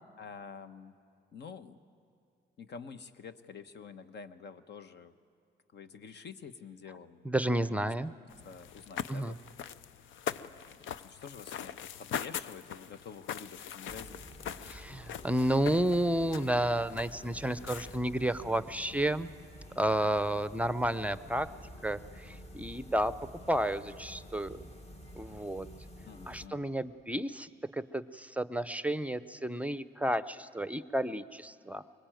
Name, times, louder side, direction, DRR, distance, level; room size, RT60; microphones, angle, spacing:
voice 1, 0.2-0.9 1.3-1.8 2.6-5.1 5.7-7.6 7.8-7.9 8.4-9.4 10.4-14.3 26.0-26.7, left 6 dB, 60° left, 10 dB, 1.1 m, -48 dB
voice 2, 7.2-8.1 9.1-9.4 14.6-19.3 19.8-21.5 21.8-24.6 25.2-25.7 26.3-31.8, right 1 dB, 5° right, 13 dB, 0.6 m, -31 dB
sound 1, 8.3-18.0, left 9 dB, 80° left, 0.6 m, -42 dB
sound 2, 13.9-26.5, equal, 30° left, 1.8 m, -50 dB
23.0 x 20.0 x 9.1 m, 2.5 s
cardioid pair, 90°, 20 cm